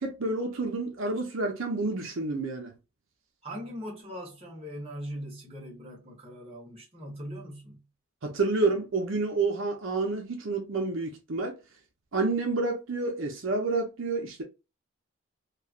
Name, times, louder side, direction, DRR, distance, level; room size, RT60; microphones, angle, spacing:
voice 1, 0.0-2.7 8.2-11.6 12.1-14.4, right 3 dB, 75° right, 0.7 m, -29 dB
voice 2, 3.4-7.9, equal, 30° right, 1.1 m, -40 dB
3.1 x 2.4 x 2.4 m
head